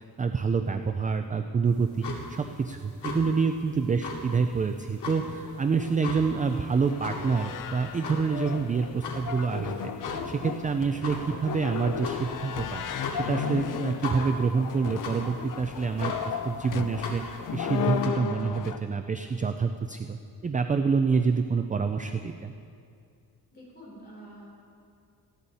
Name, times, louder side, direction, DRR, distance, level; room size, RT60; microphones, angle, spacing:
voice 1, 0.0-9.9 10.2-12.8 13.1-17.2 17.5-20.2 20.4-22.5, right 5 dB, 20° right, 7 dB, 0.4 m, -27 dB
sound 1, 1.7-18.1, left 3 dB, 85° left, 2.5 m, -40 dB
sound 2, 5.3-18.8, left 7 dB, 50° left, 0.7 m, -35 dB
voice 2, 23.5-24.5, equal, 25° left, -5 dB, 4.8 m, -46 dB
18.5 x 15.0 x 4.2 m, 2.4 s
wide cardioid pair, 170°, 40 cm